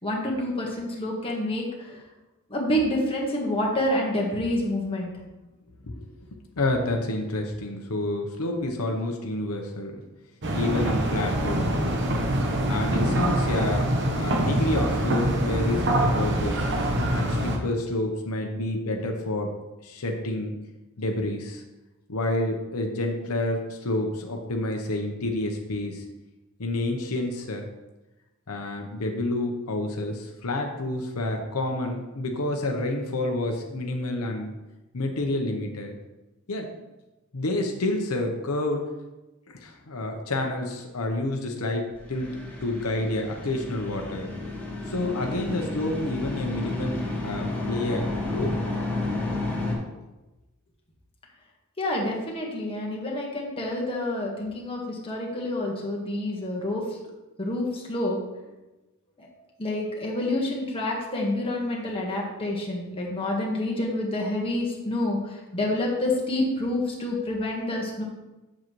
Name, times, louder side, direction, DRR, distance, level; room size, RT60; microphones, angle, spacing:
voice 1, 0.0-2.0 2.5-5.1 51.8-56.8 57.4-58.2 59.2-59.3 59.6-68.0, left 1 dB, 25° left, -2 dB, 1.5 m, -28 dB
voice 2, 5.8-6.3 6.6-10.0 10.5-12.1 12.7-13.8 14.1-16.7 17.1-19.5 19.8-20.6 21.0-21.6 22.1-26.0 26.6-27.7 28.5-34.5 34.9-36.0 36.5-36.7 37.3-38.9 39.5-44.3 44.9-48.6, left 2 dB, 80° left, 3 dB, 0.9 m, -29 dB
sound 1, 10.4-17.6, right 1 dB, 50° right, 1.0 m, -24 dB
sound 2, 41.9-49.8, left 2 dB, 10° left, 2.1 m, -31 dB
7.5 x 7.3 x 3.1 m, 1.1 s
head